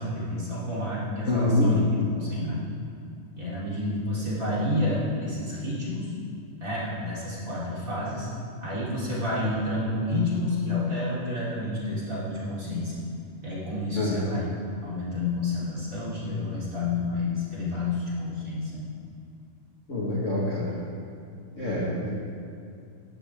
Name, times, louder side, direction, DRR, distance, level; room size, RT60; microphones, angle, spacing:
voice 1, 0.0-2.6 3.4-6.1 6.6-8.3 8.6-12.9 13.4-14.5 14.8-18.9, left 2 dB, 25° right, -7 dB, 3.6 m, -29 dB
voice 2, 1.3-1.8 13.9-14.2 19.9-20.7 21.6-22.1, left 1 dB, 30° left, -7 dB, 1.7 m, -25 dB
18.5 x 12.5 x 3.7 m, 2.4 s
omnidirectional pair, 3.5 m